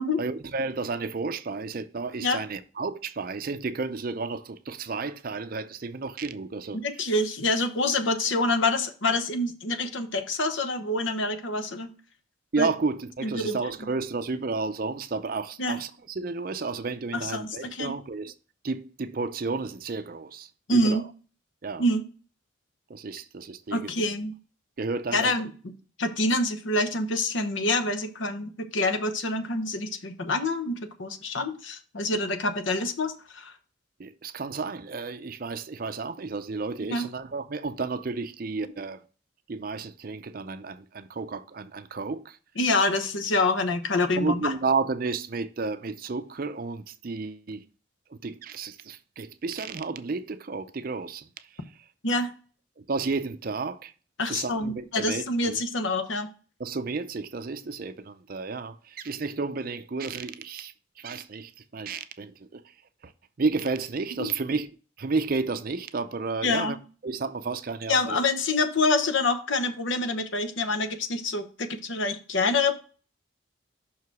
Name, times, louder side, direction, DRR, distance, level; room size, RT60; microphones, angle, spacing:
voice 1, 0.2-6.8 12.5-18.3 18.6-21.0 21.6-21.8 22.9-23.9 24.8-25.3 34.0-39.0 39.5-42.4 44.2-47.6 48.1-51.5 52.8-53.9 54.3-55.6 56.6-62.6 63.0-63.1 63.4-66.8 67.0-68.2, right 4 dB, 45° right, 0.5 m, -32 dB
voice 2, 6.8-11.9 12.6-12.7 13.2-13.6 15.6-15.8 17.1-17.9 20.7-21.0 21.8-22.0 23.7-24.3 25.1-25.5 26.0-33.5 36.9-37.1 42.6-44.5 52.0-52.3 54.2-56.3 64.2-64.3 66.4-66.8 67.9-72.8, left 2 dB, 75° left, 0.9 m, -26 dB
5.9 x 4.8 x 4.7 m
head